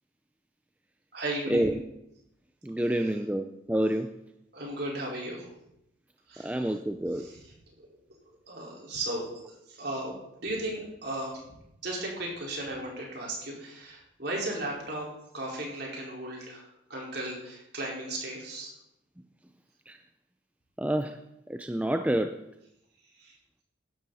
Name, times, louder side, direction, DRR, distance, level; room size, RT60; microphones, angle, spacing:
voice 1, 1.1-1.7 2.8-3.1 4.5-5.5 6.3-6.8 7.1-7.9 8.5-11.5 11.8-15.1 15.3-18.7 23.1-23.4, right 1 dB, 55° right, -3 dB, 4.7 m, -36 dB
voice 2, 2.6-4.1 6.4-7.3 19.9-20.0 20.8-21.2 21.5-22.4, right 1 dB, 5° right, 7 dB, 0.4 m, -28 dB
16.0 x 12.0 x 4.2 m, 0.83 s
head